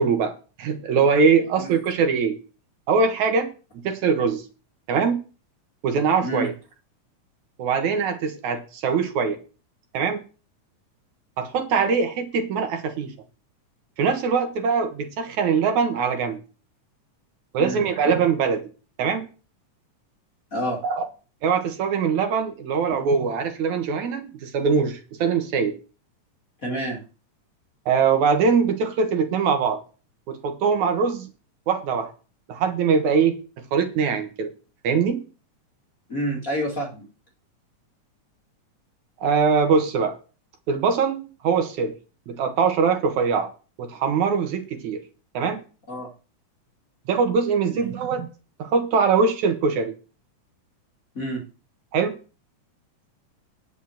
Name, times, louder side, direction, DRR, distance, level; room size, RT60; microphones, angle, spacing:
voice 1, 0.0-2.4 2.9-3.5 3.7-4.4 4.9-5.2 5.8-6.5 7.6-9.4 9.9-10.2 11.4-13.1 14.0-16.4 17.5-18.6 19.0-19.3 20.8-21.0 21.4-25.7 27.9-29.8 30.3-31.3 31.7-32.1 32.5-33.4 33.7-34.5 34.8-35.2 39.2-40.2 40.7-41.9 42.3-43.5 43.8-45.0 45.3-45.6 47.1-48.3 48.6-49.9 51.9-52.2, right 5 dB, 70° right, 6 dB, 2.7 m, -22 dB
voice 2, 20.5-20.8 26.6-27.0 36.1-37.1 45.9-46.1 47.7-47.9 51.1-51.4, right 1 dB, 30° left, 0 dB, 2.3 m, -28 dB
10.0 x 6.3 x 7.1 m, 0.34 s
omnidirectional pair, 3.7 m